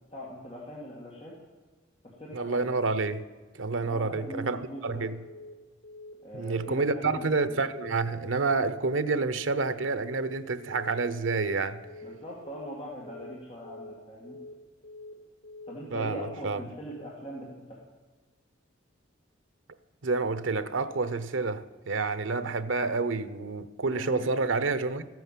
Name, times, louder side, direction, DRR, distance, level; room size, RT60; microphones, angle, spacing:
voice 1, 0.1-1.3 2.0-2.7 3.8-5.1 6.2-7.6 12.0-14.4 15.7-17.8 23.8-24.2, equal, 30° left, 2.1 m, -41 dB
voice 2, 2.3-3.2 3.5-5.2 6.3-11.8 15.9-16.6 20.0-25.1, right 3 dB, 80° right, 0.8 m, -29 dB
Telephone, 5.2-5.5 5.8-6.1 6.4-6.7 7.0-7.3 7.6-7.9 8.2-8.5 8.8-9.1 9.4-9.7 10.0-10.3 10.6-10.9 11.2-11.5 11.8-12.1 12.4-12.7 13.0-13.3 13.6-13.9 14.2-14.5 14.8-15.1 15.4-15.7 16.0-16.3, left 2 dB, 80° left, 2.5 m, -45 dB
13.5 x 9.3 x 7.5 m
head